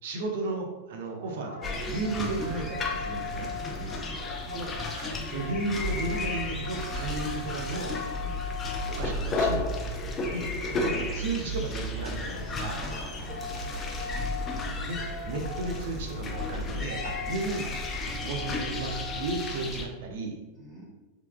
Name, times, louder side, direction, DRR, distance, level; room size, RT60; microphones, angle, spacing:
voice 1, 0.0-3.5 4.5-8.0 8.9-9.7 10.3-12.8 14.8-17.7 17.9-20.4, right 3 dB, 55° right, 2 dB, 0.8 m, -34 dB
sound 1, 0.9-9.6 12.0-19.7, left 4 dB, 90° left, 1.4 m, -41 dB
sound 2, 1.6-19.8, left 2 dB, 25° left, 0.6 m, -33 dB
voice 2, 3.6-4.6 8.1-8.4 9.9-10.1 12.7-14.0 17.2-17.4 20.5-20.8, right 1 dB, 25° right, -7 dB, 1.5 m, -46 dB
5.7 x 3.9 x 2.2 m, 1.1 s
figure-of-eight pair, 90°, 0 cm